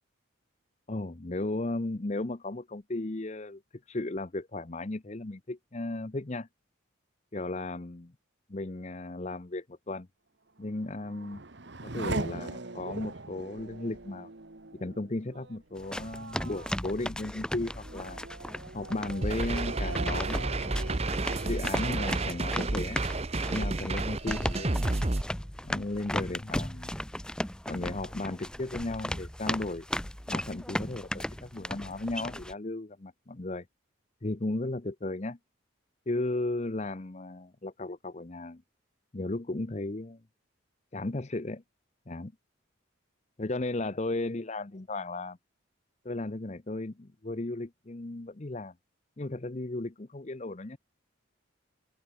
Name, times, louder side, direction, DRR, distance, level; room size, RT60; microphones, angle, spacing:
voice 1, 0.9-3.6 3.9-6.5 7.3-8.1 8.5-10.1 10.6-11.4 11.8-14.3 14.7-18.2 18.7-20.9 21.5-23.0 23.5-25.1 25.6-27.0 27.7-29.9 30.3-33.7 34.2-35.4 36.1-38.6 39.1-40.2 40.9-41.6 42.1-42.3 43.4-45.4 46.0-48.7 49.2-50.8, left 2 dB, 35° left, 0.8 m, -35 dB
Race car auto racing / Accelerating revving vroom, 10.6-23.8 24.2-24.9, right 2 dB, 60° right, 1.4 m, -42 dB
sound 1, 15.8-32.5, left 1 dB, 5° left, 0.9 m, -37 dB
sound 2, 19.2-25.2, right 2 dB, 30° right, 0.9 m, -30 dB
open air
head